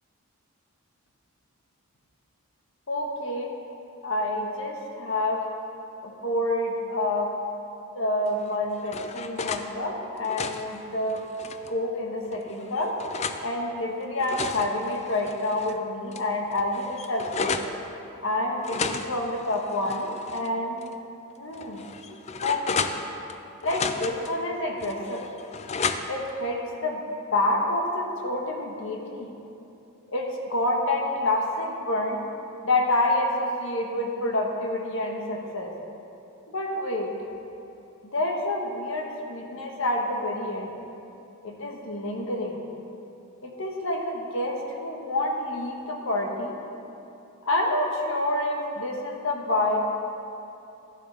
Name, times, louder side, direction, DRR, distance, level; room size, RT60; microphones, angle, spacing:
voice 1, 2.9-3.5 4.0-5.5 6.0-7.4 7.9-11.3 11.7-13.0 13.4-17.6 18.2-20.8 21.4-21.9 22.4-22.8 23.6-25.3 26.1-27.0 27.3-29.3 30.1-32.2 32.6-35.7 36.5-37.1 38.0-40.8 41.4-42.7 43.4-46.6 47.4-49.8, left 1 dB, 60° left, 1 dB, 1.3 m, -28 dB
sound 1, 8.4-9.7 10.1-11.7 12.3-13.4 14.0-15.8 16.1-16.2 16.5-17.8 18.6-20.5 20.8-20.9 21.5-23.4 23.6-24.3 24.8-26.3, left 5 dB, 30° left, 0.4 m, -33 dB
12.5 x 11.0 x 3.4 m, 2.8 s
head